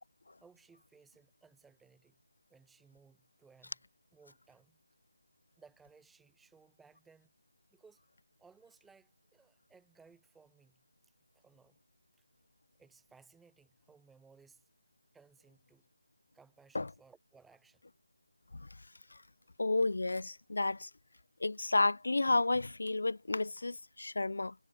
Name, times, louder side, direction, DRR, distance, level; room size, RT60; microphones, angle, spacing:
voice 1, 0.4-2.2 2.5-3.8 4.1-4.8 5.6-7.3 7.7-8.0 8.4-11.8 12.8-14.6 15.1-15.9 16.3-17.8, right 5 dB, 5° right, 5.9 m, -63 dB
voice 2, 19.6-20.9 21.4-24.5, left 2 dB, 75° left, 1.7 m, -31 dB
figure-of-eight pair, 175°, 0 cm